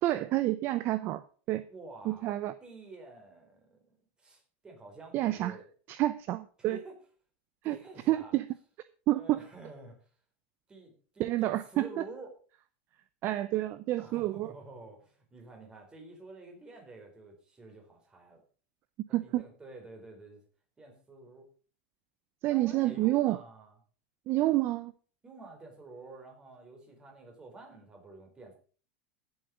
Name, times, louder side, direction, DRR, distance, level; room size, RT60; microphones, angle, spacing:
voice 1, 0.0-1.2 1.5-1.6 2.1-2.5 5.1-5.6 5.9-6.8 7.7-7.8 8.1-8.5 9.1-9.4 11.2-12.0 13.2-14.5 19.1-19.4 22.4-23.4 24.3-24.9, right 16 dB, 35° right, 14 dB, 0.6 m, -29 dB
voice 2, 1.7-2.3 2.6-5.7 6.6-7.0 7.6-8.3 9.1-10.1 10.7-12.3 14.0-18.4 19.1-20.4 20.8-21.5 22.5-23.8 25.2-28.5, right 3 dB, 15° right, 3 dB, 4.1 m, -49 dB
16.0 x 8.0 x 5.1 m, 0.41 s
supercardioid pair, 155°, 6 cm